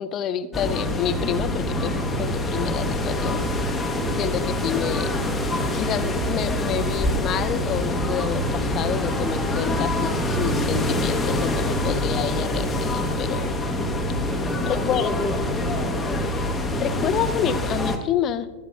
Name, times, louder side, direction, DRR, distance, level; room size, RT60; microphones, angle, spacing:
voice 1, 0.0-3.4 4.2-5.3 5.7-13.6 14.6-15.2 16.8-18.6, left 9 dB, 30° left, 13 dB, 0.5 m, -28 dB
sound 1, 0.5-18.0, left 1 dB, 10° left, 0.9 m, -25 dB
voice 2, 14.2-16.2, right 3 dB, 25° right, -4 dB, 2.1 m, -40 dB
15.5 x 10.0 x 2.4 m, 1.4 s
figure-of-eight pair, 90°, 0 cm